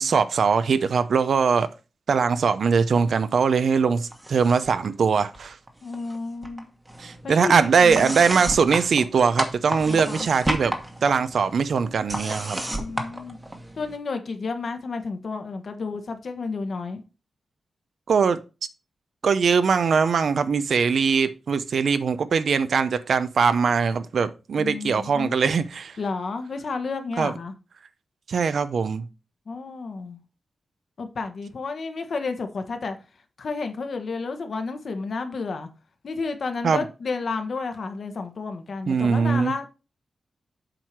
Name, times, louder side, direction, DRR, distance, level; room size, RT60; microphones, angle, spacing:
voice 1, 0.0-1.7 2.1-5.5 7.0-12.6 18.1-18.4 19.2-25.9 27.2-27.3 28.3-29.0 36.6-36.8 38.9-39.5, right 5 dB, 65° right, 0.6 m, -21 dB
sound 1, 4.1-4.9 5.1-6.2 6.4-14.0, right 1 dB, 15° right, 1.2 m, -33 dB
voice 2, 5.8-6.7 7.2-7.5 7.8-8.1 9.9-10.3 12.7-13.4 13.7-17.0 24.6-25.4 26.0-27.5 29.5-30.2 31.0-33.0 33.4-35.7 36.0-39.7, left 4 dB, 55° left, 1.2 m, -31 dB
7.7 x 4.7 x 4.6 m
wide cardioid pair, 155°, 0 cm